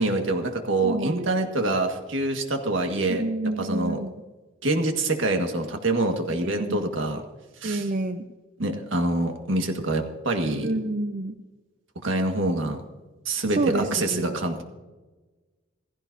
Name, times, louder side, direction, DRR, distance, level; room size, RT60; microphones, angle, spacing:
voice 1, 0.0-3.2 3.6-4.0 4.6-7.2 7.6-7.9 8.6-10.7 12.0-12.8 13.3-14.6, right 2 dB, 75° right, 4 dB, 1.7 m, -25 dB
voice 2, 0.8-1.3 3.1-4.2 6.4-6.9 7.6-8.2 10.6-11.3 13.5-14.4, right 2 dB, 45° right, 8 dB, 0.6 m, -28 dB
16.0 x 15.5 x 2.7 m, 1.2 s
head